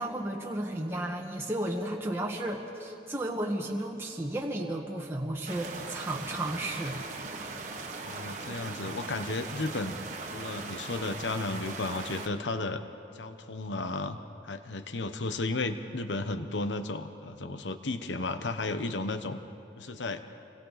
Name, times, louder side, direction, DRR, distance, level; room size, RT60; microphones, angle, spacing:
voice 1, 0.0-7.0, right 1 dB, 15° right, -2 dB, 1.4 m, -33 dB
sound 1, 5.5-12.3, right 3 dB, 40° right, 1.5 m, -39 dB
voice 2, 8.0-10.0 10.3-12.8 13.1-14.2 14.4-19.4 19.8-20.2, left 2 dB, 85° left, 9 dB, 1.0 m, -33 dB
28.5 x 23.5 x 4.1 m, 2.6 s
head